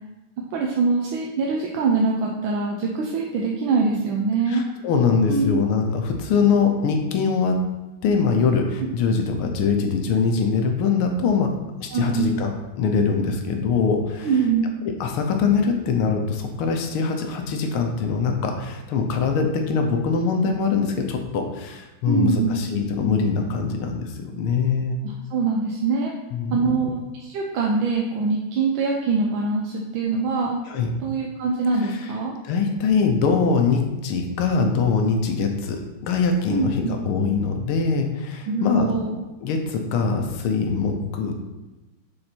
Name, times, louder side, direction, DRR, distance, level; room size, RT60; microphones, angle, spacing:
voice 1, 0.5-4.6 5.3-5.6 11.9-12.3 14.2-14.7 22.1-22.6 25.0-26.1 26.5-30.6 31.0-32.3 36.5-37.0 38.5-39.2, right 4 dB, 75° right, -1 dB, 1.4 m, -23 dB
voice 2, 4.5-7.6 8.0-11.5 11.8-14.3 15.0-25.0 26.3-26.7 30.7-30.9 31.8-32.1 32.4-38.9 39.4-41.3, left 5 dB, 90° left, 4 dB, 1.7 m, -23 dB
7.0 x 3.8 x 4.4 m, 1.1 s
omnidirectional pair, 2.3 m